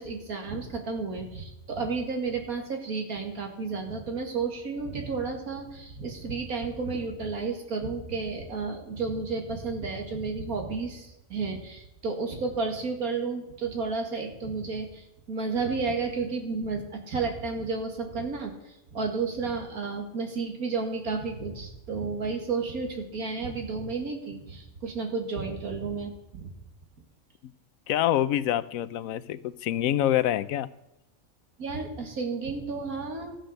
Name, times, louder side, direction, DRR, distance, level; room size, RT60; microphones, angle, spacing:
voice 1, 0.0-26.5 31.6-33.4, right 4 dB, 85° right, 3 dB, 2.4 m, -32 dB
voice 2, 27.9-30.7, left 12 dB, 75° left, 15 dB, 1.0 m, -26 dB
14.0 x 7.6 x 6.5 m, 0.90 s
omnidirectional pair, 1.5 m